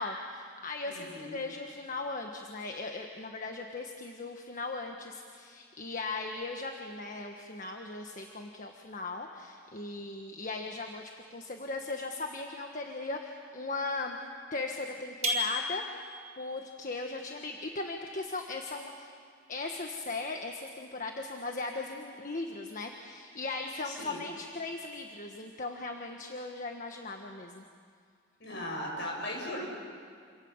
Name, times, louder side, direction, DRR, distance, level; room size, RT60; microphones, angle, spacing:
voice 1, 0.0-14.2 14.5-15.8 16.4-19.1 19.5-27.6, left 3 dB, 45° left, 3 dB, 1.4 m, -38 dB
voice 2, 0.9-1.4 23.8-24.2 28.4-29.7, left 1 dB, 65° left, -1 dB, 7.8 m, -38 dB
sound 1, 15.2-16.3, left 1 dB, 40° right, 5.3 m, -32 dB
28.0 x 26.5 x 7.3 m, 2.2 s
head